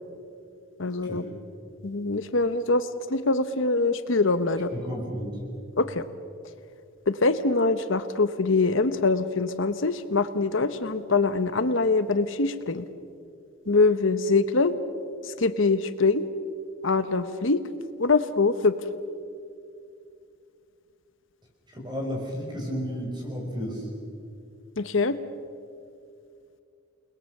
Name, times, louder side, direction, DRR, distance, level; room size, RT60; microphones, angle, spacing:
voice 1, 0.8-1.2 1.8-4.7 5.8-6.0 7.1-12.8 13.7-14.7 15.3-16.3 16.8-17.6 18.0-18.7 24.8-25.2, left 3 dB, 65° left, 11 dB, 0.9 m, -24 dB
voice 2, 4.7-5.4 21.7-23.9, equal, 20° right, 0 dB, 5.8 m, -32 dB
29.5 x 20.5 x 6.6 m, 2.5 s
head